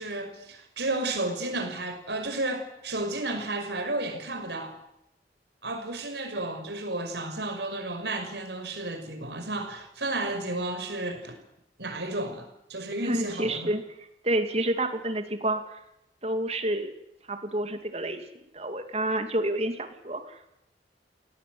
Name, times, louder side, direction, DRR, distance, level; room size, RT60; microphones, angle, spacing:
voice 1, 0.0-4.8 5.6-11.4 11.8-13.7, right 2 dB, 70° right, 6 dB, 5.7 m, -32 dB
voice 2, 13.0-13.8 14.2-15.8 16.2-16.9 17.3-18.2 18.5-20.5, right 1 dB, 35° right, 7 dB, 2.5 m, -29 dB
21.5 x 18.0 x 9.4 m, 0.82 s
head